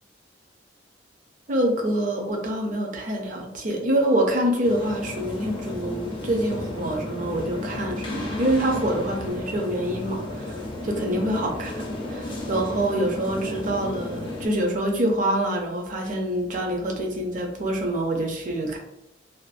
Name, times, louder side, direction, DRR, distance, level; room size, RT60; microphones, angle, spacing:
voice 1, 1.5-18.8, right 1 dB, 45° right, 1 dB, 0.5 m, -26 dB
sound 1, 4.6-14.5, left 1 dB, 25° left, 0.4 m, -33 dB
2.4 x 2.2 x 2.4 m, 0.91 s
head